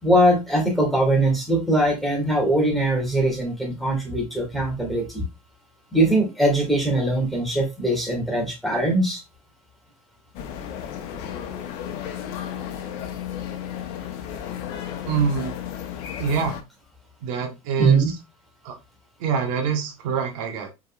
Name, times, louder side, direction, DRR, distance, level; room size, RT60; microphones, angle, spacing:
voice 1, 0.0-5.2 5.9-9.2 17.8-18.1, right 1 dB, ahead, 0 dB, 2.0 m, -21 dB
sound 1, 10.3-16.6, left 9 dB, 65° left, 0.9 m, -33 dB
voice 2, 15.1-15.5 16.2-16.6 17.2-18.0 18.6-18.7 19.2-20.7, right 6 dB, 70° right, 3 dB, 1.2 m, -25 dB
4.8 x 3.9 x 2.4 m, 0.23 s
hypercardioid pair, 95°, 18 cm